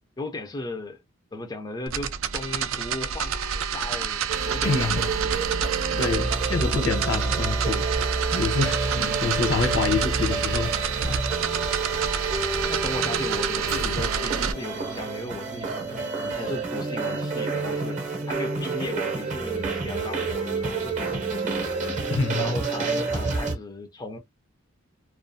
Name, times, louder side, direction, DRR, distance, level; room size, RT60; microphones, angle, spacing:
voice 1, 0.2-1.0 1.3-5.2 5.9-6.1 8.9-9.2 12.7-18.0 18.3-21.7 22.4-24.2, left 2 dB, 20° left, 0.4 m, -36 dB
sound 1, 1.9-14.5, right 7 dB, 70° right, 0.4 m, -28 dB
sound 2, 4.3-23.5, right 3 dB, 35° right, 0.7 m, -29 dB
voice 2, 4.6-5.1 6.0-7.9 8.3-11.2 22.1-22.6, left 4 dB, 60° left, 0.6 m, -27 dB
sound 3, 13.7-16.0 16.3-16.4, left 2 dB, 85° left, 0.9 m, -44 dB
2.3 x 2.3 x 2.5 m
head